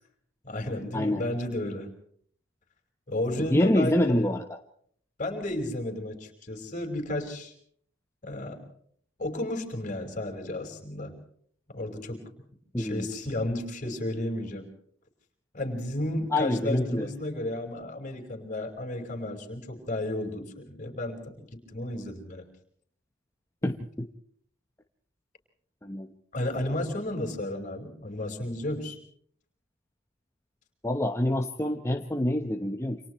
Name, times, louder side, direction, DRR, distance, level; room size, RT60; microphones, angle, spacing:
voice 1, 0.4-1.9 3.1-4.3 5.2-7.5 8.2-8.6 9.2-11.1 11.7-12.2 12.8-14.7 15.5-21.5 21.7-22.4 26.3-29.0, left 1 dB, 40° left, 3 dB, 5.4 m, -33 dB
voice 2, 3.5-4.6 12.7-13.1 16.3-17.1 23.6-24.1 25.8-26.1 30.8-33.0, left 1 dB, 15° left, 3 dB, 1.2 m, -26 dB
29.5 x 27.5 x 3.2 m, 0.62 s
head